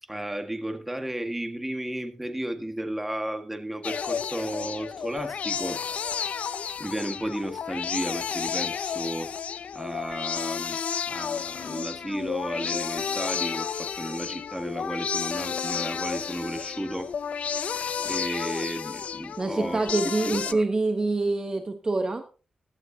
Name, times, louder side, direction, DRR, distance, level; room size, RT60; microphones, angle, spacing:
voice 1, 0.1-5.8 6.8-9.3 9.7-10.8 11.1-17.1 17.6-19.8 20.2-20.6, right 1 dB, 10° right, 6 dB, 1.8 m, -33 dB
sound 1, 3.8-20.5, left 7 dB, 75° left, 0.6 m, -32 dB
voice 2, 19.4-22.2, right 3 dB, 35° right, 7 dB, 1.1 m, -26 dB
16.5 x 11.5 x 2.9 m, 0.35 s
wide cardioid pair, 110°, 2 cm